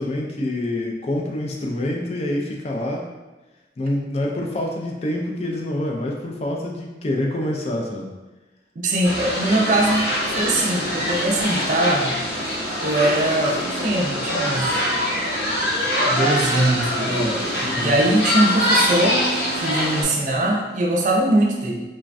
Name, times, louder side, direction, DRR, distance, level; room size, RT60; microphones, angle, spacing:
voice 1, 0.0-3.1 3.8-8.1 17.6-18.0, left 1 dB, 35° left, 0 dB, 0.3 m, -26 dB
voice 2, 8.8-12.2 12.8-14.8 16.1-19.3 19.5-21.8, right 1 dB, 45° right, 0 dB, 0.4 m, -21 dB
sound 1, 9.0-20.0, equal, 60° left, 0.7 m, -23 dB
3.3 x 2.1 x 2.5 m, 1.1 s
head